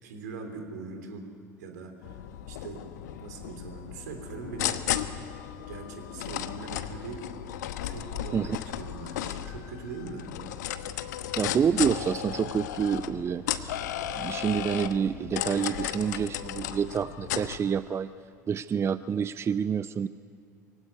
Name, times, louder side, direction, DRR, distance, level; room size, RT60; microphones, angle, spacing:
voice 1, 0.0-1.2 1.6-2.2 2.5-2.8 3.2-4.8 5.7-7.2 7.8-10.3, right 4 dB, 70° right, 5 dB, 3.3 m, -41 dB
sound 1, 2.0-17.6, left 11 dB, 70° left, 1.0 m, -35 dB
voice 2, 11.4-13.8 14.2-18.1 18.5-20.1, right 7 dB, 25° right, 15 dB, 0.5 m, -28 dB
23.0 x 16.5 x 9.6 m, 2.4 s
figure-of-eight pair, 65°, 10 cm